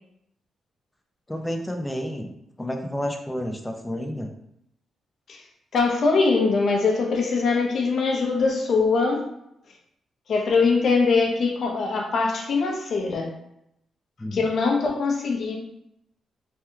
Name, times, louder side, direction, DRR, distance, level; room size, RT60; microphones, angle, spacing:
voice 1, 1.3-2.3 2.6-4.3 14.2-14.4, equal, 10° left, 4 dB, 0.5 m, -30 dB
voice 2, 5.7-9.2 10.3-13.3 14.3-15.6, left 4 dB, 65° left, 1 dB, 0.7 m, -22 dB
3.4 x 2.9 x 2.2 m, 0.79 s
cardioid pair, 80°, 0 cm